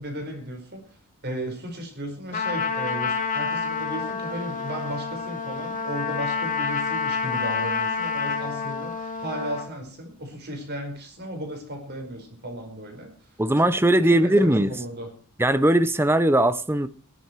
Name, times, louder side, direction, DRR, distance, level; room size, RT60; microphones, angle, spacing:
voice 1, 0.0-13.1 13.6-13.7 14.2-15.1, right 1 dB, 45° right, 4.9 m, -35 dB
Trumpet, 2.3-9.7, left 5 dB, 35° left, 2.6 m, -28 dB
voice 2, 13.4-14.7 15.4-16.9, right 1 dB, 10° right, 0.7 m, -19 dB
18.5 x 11.0 x 4.7 m
head